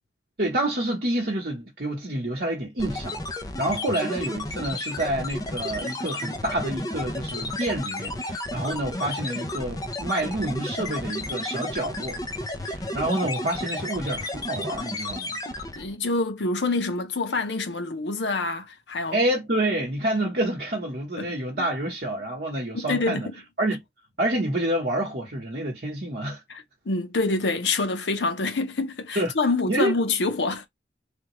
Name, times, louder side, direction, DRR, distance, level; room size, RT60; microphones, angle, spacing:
voice 1, 0.4-12.2 12.6-15.4 19.1-23.3 23.6-23.8 24.2-26.4 29.1-29.3 29.7-29.9, right 1 dB, 55° right, 1.0 m, -28 dB
sound 1, 2.8-15.9, left 1 dB, 20° left, 0.5 m, -32 dB
voice 2, 15.8-19.2 21.2-21.7 22.7-23.2 26.5-30.7, left 3 dB, 85° left, 0.7 m, -26 dB
3.4 x 2.3 x 3.0 m
head